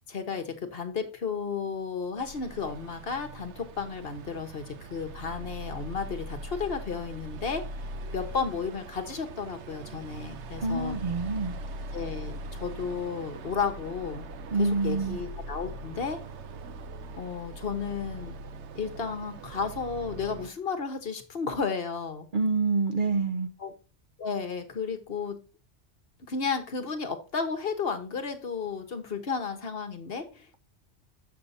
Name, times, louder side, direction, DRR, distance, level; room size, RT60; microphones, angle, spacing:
voice 1, 0.1-7.7 8.1-11.0 11.9-14.3 14.6-16.2 17.2-18.4 18.7-22.3 23.6-23.7 24.2-25.4 26.2-30.6, left 5 dB, 55° left, 1.2 m, -33 dB
sound 1, 2.2-20.5, right 2 dB, 70° right, 1.0 m, -41 dB
voice 2, 10.6-11.5 14.5-15.2 22.3-23.5, right 4 dB, 50° right, 0.8 m, -27 dB
6.8 x 6.6 x 4.1 m
omnidirectional pair, 1.2 m